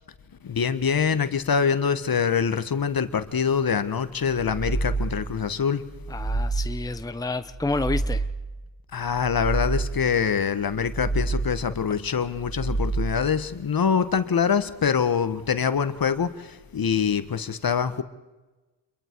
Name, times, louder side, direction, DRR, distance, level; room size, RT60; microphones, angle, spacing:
voice 1, 0.4-5.9 8.9-18.0, left 6 dB, 50° left, 1.6 m, -24 dB
sound 1, 4.3-5.3 5.8-6.9 7.4-8.5 9.0-10.1 10.6-11.7 12.3-13.4, right 3 dB, 70° right, 4.7 m, -29 dB
voice 2, 6.1-8.2, left 2 dB, 10° left, 1.0 m, -29 dB
28.5 x 22.5 x 4.8 m
cardioid pair, 55°, 46 cm